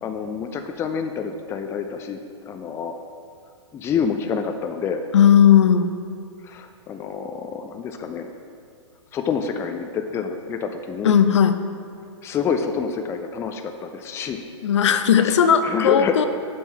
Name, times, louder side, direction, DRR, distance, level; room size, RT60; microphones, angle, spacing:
voice 1, 0.0-3.0 3.7-5.0 6.4-8.3 9.1-11.2 12.2-14.4 15.2-16.1, left 6 dB, 15° left, 6 dB, 0.4 m, -27 dB
voice 2, 5.1-6.0 11.0-11.6 14.6-16.2, left 8 dB, 65° left, 9 dB, 0.5 m, -16 dB
7.0 x 4.6 x 5.6 m, 2.2 s
figure-of-eight pair, 110°, 16 cm